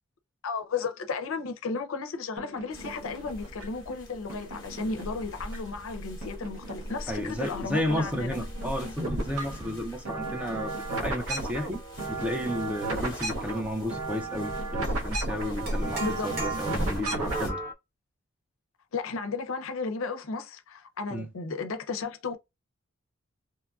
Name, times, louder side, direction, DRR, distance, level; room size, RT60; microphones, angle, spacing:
voice 1, 0.4-8.4 16.0-16.4 18.9-22.4, left 4 dB, 70° left, 0.5 m, -34 dB
sound 1, 2.4-3.9 4.3-5.9 6.2-7.5 7.8-17.7, right 2 dB, 90° right, 0.7 m, -35 dB
sound 2, 2.7-17.5, equal, 20° left, 1.1 m, -40 dB
voice 2, 7.1-11.8 12.1-17.6 21.1-21.3, equal, 5° right, 0.4 m, -32 dB
sound 3, 14.8-15.0 15.6-17.1, right 4 dB, 50° right, 0.9 m, -37 dB
2.9 x 2.5 x 2.2 m
head